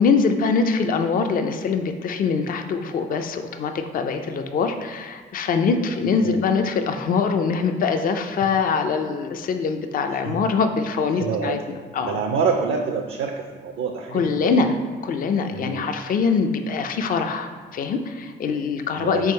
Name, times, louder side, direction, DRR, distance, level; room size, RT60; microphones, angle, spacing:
voice 1, 0.0-12.2 14.1-14.8 15.0-19.3, left 5 dB, 45° left, 7 dB, 0.4 m, -23 dB
voice 2, 11.1-11.6 12.0-14.6 15.5-15.9 19.0-19.3, right 5 dB, 65° right, 3 dB, 0.4 m, -27 dB
3.5 x 3.4 x 4.3 m, 1.5 s
cardioid pair, 90°, 20 cm